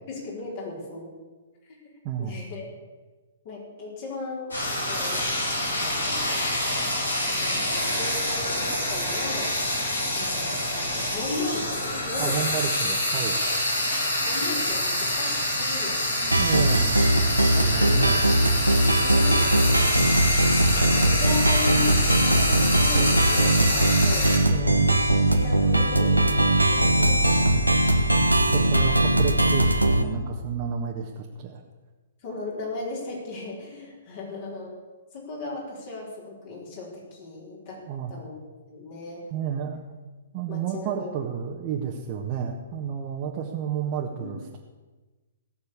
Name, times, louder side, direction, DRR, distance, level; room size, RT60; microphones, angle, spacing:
voice 1, 0.1-1.1 1.6-1.8 2.2-2.7 3.4-4.6 4.8-5.3 5.8-6.3 7.4-9.5 10.1-12.4 14.2-16.8 17.8-18.2 18.9-24.5 24.9-25.0 25.3-27.5 28.5-28.9 32.2-34.7 35.1-37.8 38.1-38.4 38.7-39.2 40.5-41.1 44.2-44.4, left 2 dB, 45° left, -3 dB, 4.6 m, -37 dB
voice 2, 2.0-2.4 12.2-13.4 16.2-17.0 17.5-18.2 24.5-24.9 26.7-27.8 28.2-31.6 37.9-38.1 39.3-39.9 40.3-44.6, right 8 dB, 35° right, -1 dB, 1.6 m, -31 dB
Frying (food), 4.5-24.4, left 1 dB, 80° left, 5.8 m, -26 dB
sound 1, 16.3-30.0, right 1 dB, 90° right, 1.3 m, -20 dB
18.0 x 6.7 x 8.6 m, 1.3 s
figure-of-eight pair, 115°, 0 cm